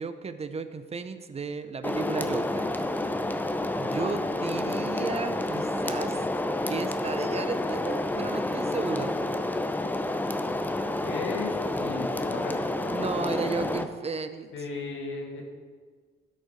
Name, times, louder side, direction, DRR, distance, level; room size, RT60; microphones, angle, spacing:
voice 1, 0.0-2.7 3.8-6.2 6.7-9.2 12.9-14.5, right 5 dB, 30° right, 11 dB, 0.6 m, -34 dB
sound 1, 1.8-13.8, left 1 dB, 10° left, 0.6 m, -29 dB
voice 2, 11.0-12.6 12.8-13.0 14.5-15.4, left 3 dB, 75° left, 1 dB, 1.8 m, -35 dB
12.0 x 5.4 x 5.0 m, 1.5 s
cardioid pair, 90°, 20 cm